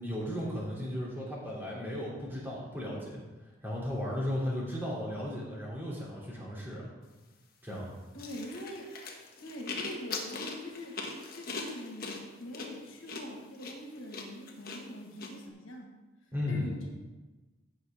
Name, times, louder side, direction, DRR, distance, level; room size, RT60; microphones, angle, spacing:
voice 1, 0.0-3.2 3.6-6.9 7.6-7.8 16.3-16.7, left 1 dB, 10° right, -6 dB, 3.0 m, -35 dB
voice 2, 8.1-8.9 9.4-11.0 11.3-15.9 16.5-16.9, equal, 85° left, 1 dB, 1.7 m, -43 dB
sound 1, 8.2-15.3, left 4 dB, 45° left, 1.3 m, -40 dB
16.0 x 6.6 x 3.6 m, 1.2 s
head